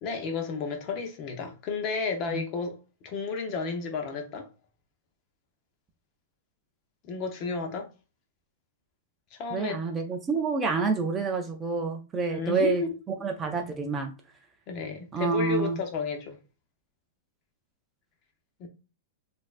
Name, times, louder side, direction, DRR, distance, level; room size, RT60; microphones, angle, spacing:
voice 1, 0.0-2.8 3.0-4.5 7.0-7.9 9.3-9.9 12.2-12.9 14.7-16.4 18.6-18.7, left 4 dB, 35° left, 0.7 m, -32 dB
voice 2, 9.5-12.8 13.2-14.1 15.1-15.8, right 4 dB, 15° right, 0.4 m, -28 dB
4.2 x 2.5 x 2.4 m
supercardioid pair, 155°, 0 cm